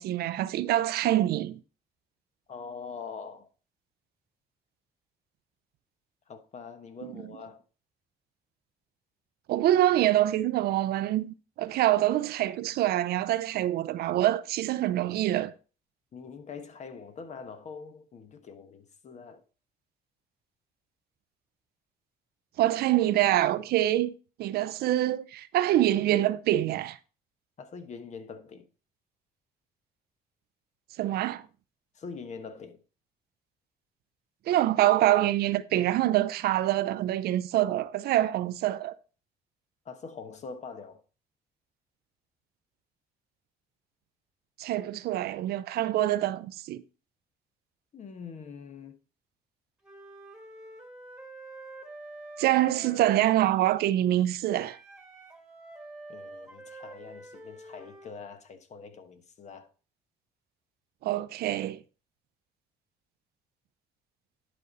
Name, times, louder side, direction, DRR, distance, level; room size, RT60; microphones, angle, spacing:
voice 1, 0.0-1.6 7.0-7.1 9.5-15.5 22.6-24.1 24.4-27.0 31.0-31.4 34.5-38.9 44.6-46.8 52.4-54.8 61.0-61.8, right 13 dB, 70° right, 0.6 m, -25 dB
voice 2, 2.5-3.5 6.3-7.6 16.1-19.4 27.6-28.7 31.9-32.8 39.8-41.0 47.9-48.9 56.1-59.7, left 5 dB, 45° left, 1.2 m, -43 dB
Wind instrument woodwind instrument, 49.8-53.6 54.5-58.1, right 2 dB, 5° right, 1.6 m, -47 dB
10.5 x 5.3 x 4.1 m
cardioid pair, 110°, 17 cm